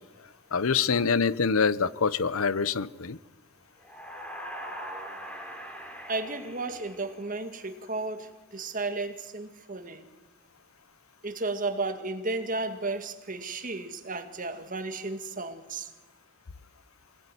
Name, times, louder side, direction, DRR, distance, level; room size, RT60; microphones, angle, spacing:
voice 1, 0.5-3.2, left 5 dB, 75° left, 0.8 m, -25 dB
sound 1, 3.8-7.6, equal, 5° left, 3.1 m, -41 dB
voice 2, 6.1-10.1 11.2-15.9, right 3 dB, 40° right, 1.9 m, -33 dB
24.5 x 18.5 x 9.9 m
head